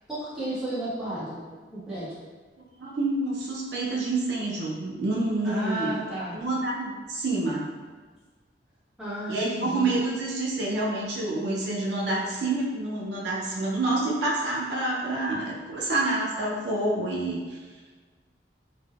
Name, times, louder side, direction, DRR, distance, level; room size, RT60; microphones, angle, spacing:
voice 1, 0.1-1.4 1.7-2.1 5.4-6.4 9.0-10.0, right 1 dB, 5° right, -12 dB, 0.9 m, -33 dB
voice 2, 2.8-6.0 6.3-7.7 9.3-17.6, right 2 dB, 75° right, -4 dB, 0.5 m, -28 dB
3.4 x 2.0 x 2.3 m, 1.4 s
head